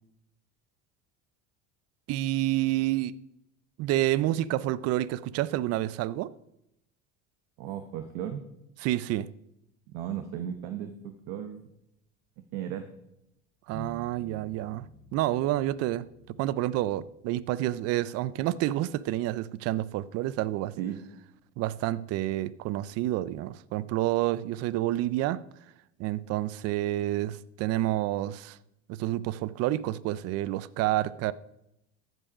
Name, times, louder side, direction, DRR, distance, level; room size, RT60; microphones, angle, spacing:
voice 1, 2.1-3.1 3.8-6.3 8.8-9.3 13.7-14.8 15.1-20.7 21.6-25.4 26.0-28.6 28.9-31.3, right 14 dB, 55° right, 0.5 m, -29 dB
voice 2, 7.6-8.5 9.9-11.6 12.5-12.9 20.8-21.0, right 10 dB, 75° right, 0.9 m, -35 dB
sound 1, 13.7-17.0, right 1 dB, 15° left, 3.3 m, -49 dB
14.5 x 5.5 x 4.9 m
cardioid pair, 120°, 30 cm